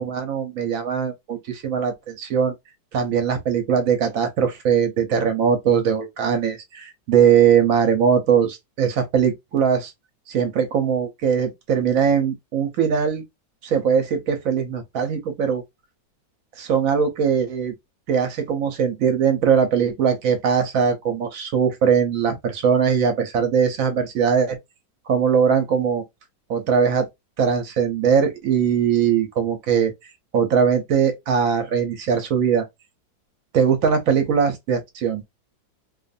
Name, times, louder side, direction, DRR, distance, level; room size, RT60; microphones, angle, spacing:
voice 1, 0.0-2.5 2.9-9.9 10.3-13.2 13.6-15.6 16.6-17.7 18.1-24.6 25.1-26.0 26.5-27.1 27.4-29.9 30.3-32.6 33.5-35.2, right 7 dB, 60° right, 0.9 m, -20 dB
2.7 x 2.5 x 2.5 m
omnidirectional pair, 2.0 m